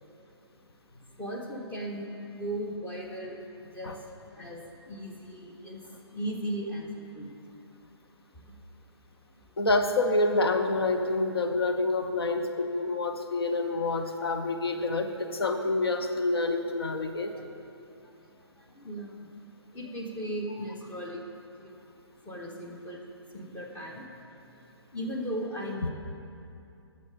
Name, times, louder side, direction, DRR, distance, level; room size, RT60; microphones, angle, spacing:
voice 1, 1.1-4.1 4.4-7.6 8.3-8.6 9.4-9.6 13.5-13.8 14.8-14.9 17.3-17.5 18.0-21.2 21.6-21.8 22.2-25.9, right 1 dB, 10° left, -1 dB, 0.8 m, -38 dB
voice 2, 9.6-17.3, left 2 dB, 60° left, 6 dB, 0.8 m, -27 dB
11.5 x 6.7 x 5.0 m, 2.7 s
figure-of-eight pair, 135°, 15 cm